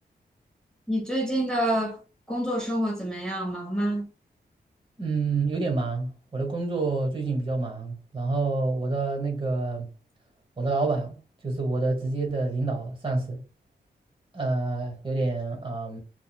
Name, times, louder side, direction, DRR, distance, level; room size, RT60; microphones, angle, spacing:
voice 1, 0.9-2.0 2.3-4.0, right 1 dB, 5° left, 1.0 m, -27 dB
voice 2, 5.0-9.9 10.6-11.2 11.4-13.4 14.3-16.0, right 3 dB, 30° right, 1.3 m, -28 dB
3.9 x 2.3 x 2.3 m
wide cardioid pair, 85°, 17 cm